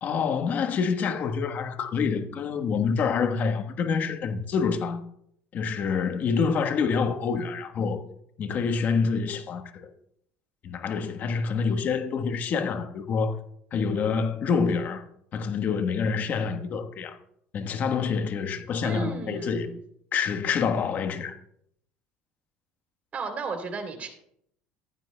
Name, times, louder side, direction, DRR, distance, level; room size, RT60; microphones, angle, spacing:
voice 1, 0.0-5.0 5.5-8.0 8.4-9.9 10.6-13.4 13.7-15.0 15.3-17.2 17.5-19.7 20.1-21.4, left 5 dB, 45° left, 1.2 m, -27 dB
voice 2, 18.8-19.8 23.1-24.1, right 4 dB, 40° right, 3.0 m, -34 dB
14.5 x 12.5 x 2.2 m
supercardioid pair, 105°, 4 cm